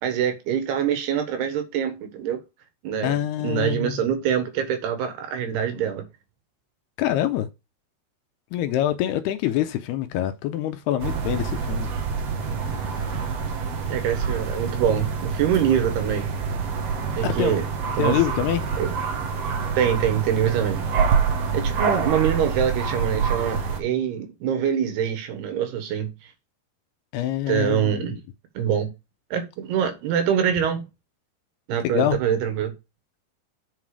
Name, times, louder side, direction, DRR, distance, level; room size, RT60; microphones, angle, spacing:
voice 1, 0.0-2.4 2.8-6.1 13.9-16.3 17.2-17.6 17.9-18.2 18.8-18.9 19.8-20.8 21.5-26.1 27.5-28.1 28.6-28.9 29.3-30.8 31.7-32.7, right 9 dB, 70° right, 3.2 m, -24 dB
voice 2, 3.0-4.0 7.0-7.5 8.5-11.9 12.8-13.1 17.2-17.6 18.0-18.6 27.1-28.2 31.9-32.2, left 12 dB, 80° left, 2.6 m, -25 dB
sound 1, 11.0-23.8, right 5 dB, 90° right, 1.4 m, -26 dB
8.4 x 5.9 x 4.7 m
omnidirectional pair, 5.0 m